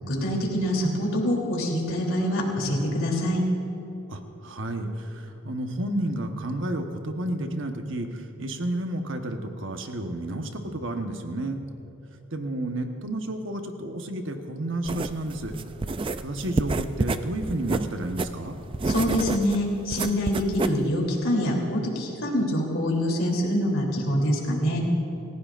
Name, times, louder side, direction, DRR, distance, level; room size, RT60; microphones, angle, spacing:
voice 1, 0.1-3.4 18.8-24.8, equal, 65° left, -1 dB, 3.1 m, -25 dB
voice 2, 4.1-11.6 12.3-15.5 16.2-18.6, right 1 dB, 60° right, 5 dB, 1.2 m, -31 dB
sound 1, 14.8-20.9, right 3 dB, 25° right, 0.3 m, -29 dB
28.0 x 15.5 x 2.5 m, 3.0 s
head